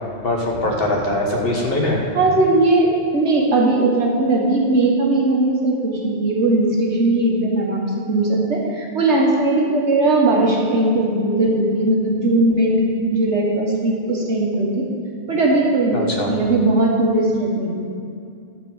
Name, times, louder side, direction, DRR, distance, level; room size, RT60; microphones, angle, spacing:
voice 1, 0.2-2.0 15.9-16.3, left 1 dB, 55° left, -1 dB, 1.5 m, -22 dB
voice 2, 2.1-12.8 13.1-14.9 15.3-16.0 16.3-17.8, right 2 dB, 80° right, -2 dB, 1.8 m, -18 dB
11.5 x 4.7 x 7.2 m, 2.5 s
omnidirectional pair, 1.1 m